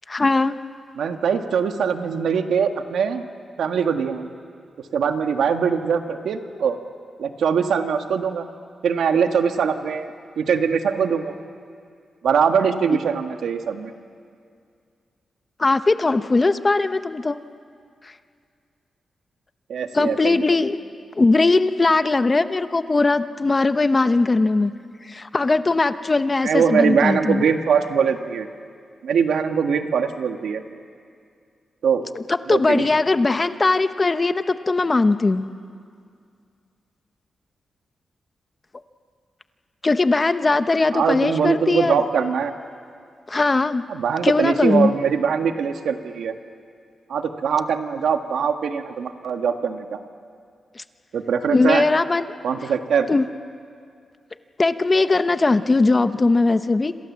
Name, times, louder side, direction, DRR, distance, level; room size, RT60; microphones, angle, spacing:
voice 1, 0.1-0.6 15.6-17.4 18.0-18.1 19.9-20.8 21.2-24.7 25.0-27.4 32.3-35.5 39.8-42.1 43.3-43.8 44.2-44.9 50.8-50.9 51.5-52.2 53.1-53.3 54.6-56.9, left 3 dB, 30° left, 11 dB, 0.8 m, -19 dB
voice 2, 0.9-3.2 3.6-4.3 4.8-6.8 7.2-8.5 8.8-11.4 12.2-13.9 19.7-20.6 26.4-28.5 29.0-30.6 31.8-32.0 32.5-32.9 40.9-42.5 43.9-46.4 47.1-50.0 51.1-51.8 52.4-53.1, right 6 dB, 90° right, 6 dB, 1.6 m, -22 dB
27.5 x 27.0 x 7.4 m, 2.3 s
wide cardioid pair, 110°, 0 cm